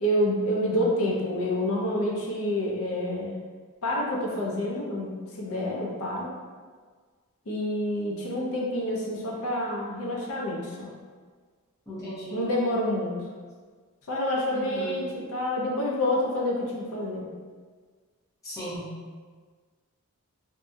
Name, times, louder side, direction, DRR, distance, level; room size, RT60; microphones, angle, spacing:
voice 1, 0.0-3.3 3.8-6.3 7.5-10.9 12.3-13.1 14.1-17.3, left 1 dB, 70° left, -3 dB, 0.6 m, -28 dB
voice 2, 11.9-12.4 14.5-15.0 18.4-19.0, equal, 15° left, -10 dB, 0.8 m, -36 dB
2.7 x 2.6 x 2.3 m, 1.5 s
head